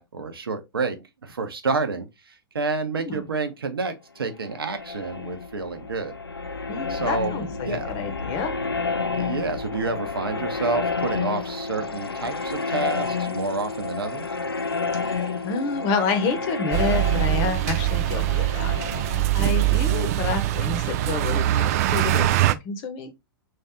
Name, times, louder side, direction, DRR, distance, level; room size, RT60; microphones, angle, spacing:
voice 1, 0.0-6.2 6.9-7.3 7.6-8.0 9.1-14.2 19.6-20.1, right 3 dB, 75° right, 0.9 m, -29 dB
sound 1, 4.3-20.9, left 4 dB, 90° left, 0.5 m, -30 dB
voice 2, 6.7-8.6 14.9-23.1, left 4 dB, 35° left, 1.0 m, -29 dB
sound 2, 16.7-22.5, right 15 dB, 40° right, 0.3 m, -23 dB
3.2 x 2.8 x 3.5 m
figure-of-eight pair, 105°, 12 cm